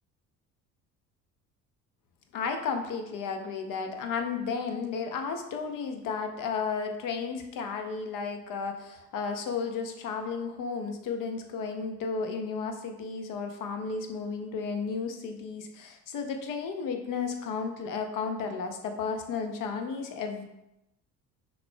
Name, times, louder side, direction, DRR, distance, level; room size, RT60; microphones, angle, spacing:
voice 1, 2.3-20.4, left 5 dB, 45° left, 5 dB, 0.6 m, -33 dB
5.7 x 2.2 x 2.2 m, 0.90 s
hypercardioid pair, 60°, 46 cm